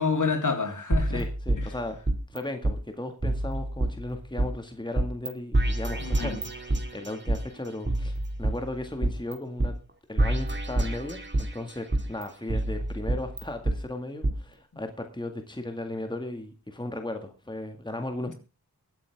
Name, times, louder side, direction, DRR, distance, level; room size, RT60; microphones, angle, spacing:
voice 1, 0.0-1.2 6.0-6.4, left 4 dB, 55° left, 3.5 m, -28 dB
sound 1, 0.9-2.4 2.6-2.8 3.2-4.5 5.0-5.3 5.5-7.4 7.9-9.3 9.6-9.7 10.2-11.5 11.9-13.8 14.2-14.3, right 1 dB, 30° right, 2.5 m, -27 dB
voice 2, 1.1-2.0 2.3-9.7 10.1-18.3, left 1 dB, 10° left, 2.0 m, -36 dB
23.0 x 8.8 x 3.6 m
cardioid pair, 55°, 37 cm